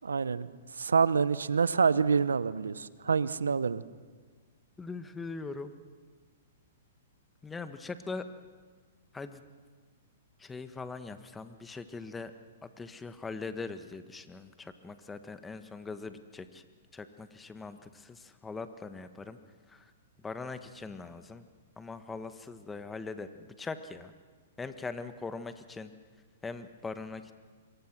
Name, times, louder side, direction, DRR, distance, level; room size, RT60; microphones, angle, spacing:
voice 1, 0.0-0.5 0.8-3.8, right 5 dB, 85° right, 17 dB, 0.9 m, -27 dB
voice 2, 4.8-5.7 7.4-8.2 9.1-9.4 10.4-12.3 12.6-16.6 16.9-19.4 19.7-19.8 20.2-21.5 21.8-24.1 24.6-25.9 26.4-27.3, left 4 dB, 10° left, 10 dB, 1.4 m, -41 dB
26.0 x 23.0 x 6.2 m, 1.5 s
hypercardioid pair, 120°, 0 cm